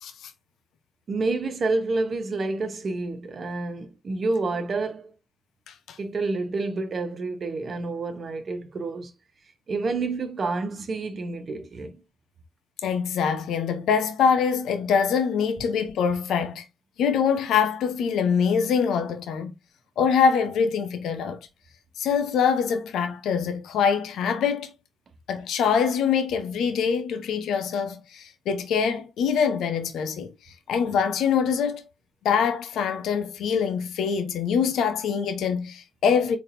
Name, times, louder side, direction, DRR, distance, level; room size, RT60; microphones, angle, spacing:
voice 1, 1.1-5.1 6.0-9.1 9.7-12.0, right 3 dB, 50° right, 1.1 m, -29 dB
voice 2, 5.7-6.0 12.8-16.6 17.0-19.5 20.0-21.4 22.0-24.7 25.3-30.3 30.7-31.8 32.2-36.4, left 6 dB, 75° left, 0.7 m, -24 dB
4.0 x 3.5 x 2.6 m
hypercardioid pair, 40°, 0 cm